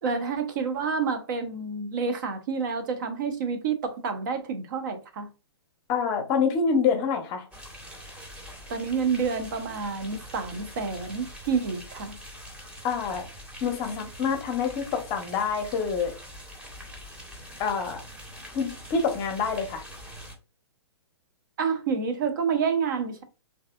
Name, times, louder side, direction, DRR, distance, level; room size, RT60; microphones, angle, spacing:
voice 1, 0.0-5.3 8.7-12.2 21.6-23.2, right 5 dB, 45° right, 0.5 m, -28 dB
voice 2, 5.9-7.5 12.8-13.3 13.6-16.1 17.6-18.0 18.5-19.8, left 5 dB, 25° left, 0.7 m, -26 dB
sound 1, 7.5-20.3, equal, 10° right, 0.7 m, -44 dB
3.3 x 2.6 x 2.3 m
figure-of-eight pair, 120°, 15 cm